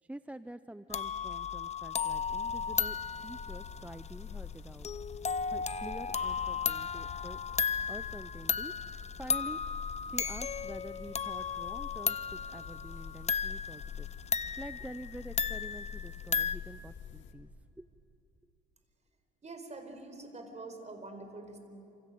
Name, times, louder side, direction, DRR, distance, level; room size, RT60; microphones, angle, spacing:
voice 1, 0.0-4.9 5.5-7.4 7.9-9.6 10.0-14.1 14.6-17.5 17.8-17.9, right 1 dB, 5° right, 12 dB, 0.5 m, -47 dB
sound 1, 0.9-16.6, left 6 dB, 35° left, 0.7 m, -35 dB
sound 2, 2.1-17.3, left 8 dB, 70° left, 1.9 m, -46 dB
voice 2, 19.4-21.6, right 2 dB, 35° right, 6 dB, 4.5 m, -45 dB
28.5 x 27.0 x 7.6 m, 2.7 s
cardioid pair, 90°, 20 cm